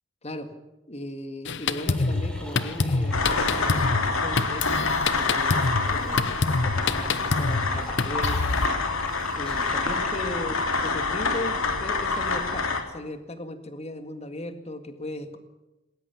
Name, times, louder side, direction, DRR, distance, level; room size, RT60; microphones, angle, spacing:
voice 1, 0.9-8.6 9.4-15.4, left 1 dB, 30° left, 8 dB, 1.9 m, -37 dB
Drum kit, 1.4-8.7, left 3 dB, 55° left, 1.0 m, -27 dB
sound 1, 1.7-10.2, equal, 5° left, 3.7 m, -42 dB
sound 2, 3.1-12.8, left 4 dB, 75° left, 2.9 m, -27 dB
20.0 x 18.5 x 7.1 m, 1.0 s
head